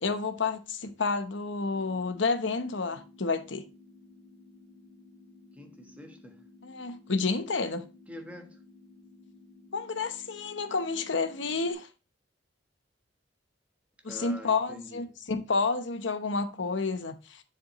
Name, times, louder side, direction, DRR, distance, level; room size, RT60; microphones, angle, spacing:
voice 1, 0.0-3.6 6.6-7.9 9.7-11.9 14.0-17.4, left 4 dB, 70° left, 0.9 m, -30 dB
sound 1, 1.7-11.7, left 3 dB, 30° right, 3.1 m, -55 dB
voice 2, 5.5-6.4 8.1-8.6 14.1-15.2, equal, 10° right, 1.3 m, -45 dB
7.3 x 7.1 x 3.0 m
head